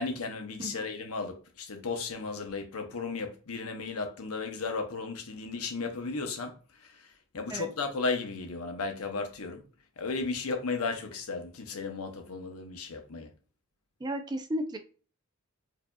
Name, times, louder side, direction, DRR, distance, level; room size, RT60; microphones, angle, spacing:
voice 1, 0.0-9.6 10.0-13.3, left 4 dB, 85° left, 0.8 m, -35 dB
voice 2, 14.0-14.8, equal, 20° right, 0.4 m, -34 dB
4.7 x 2.7 x 2.3 m
head